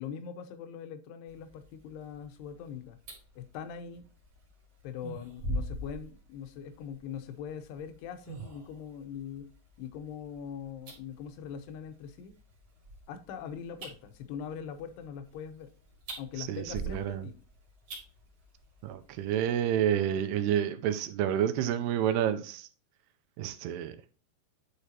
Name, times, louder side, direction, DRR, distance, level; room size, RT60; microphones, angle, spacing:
voice 1, 0.0-3.0 3.4-4.0 4.8-9.5 9.8-12.3 13.1-15.7 16.2-17.4, left 8 dB, 80° left, 9 dB, 2.8 m, -42 dB
sound 1, 1.3-19.6, right 1 dB, 45° right, 2.9 m, -45 dB
voice 2, 16.4-17.2 18.8-22.7 23.4-23.9, right 10 dB, 80° right, 10 dB, 2.5 m, -29 dB
9.4 x 5.0 x 2.8 m, 0.37 s
omnidirectional pair, 4.8 m